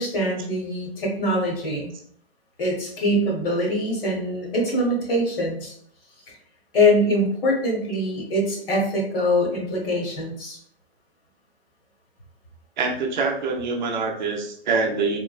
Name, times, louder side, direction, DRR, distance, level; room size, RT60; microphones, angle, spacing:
voice 1, 0.0-1.9 2.6-5.7 6.7-10.6, left 1 dB, 60° left, -1 dB, 1.4 m, -23 dB
voice 2, 12.8-15.2, right 4 dB, 45° right, 2 dB, 0.6 m, -25 dB
3.6 x 2.1 x 2.3 m, 0.62 s
hypercardioid pair, 155°, 32 cm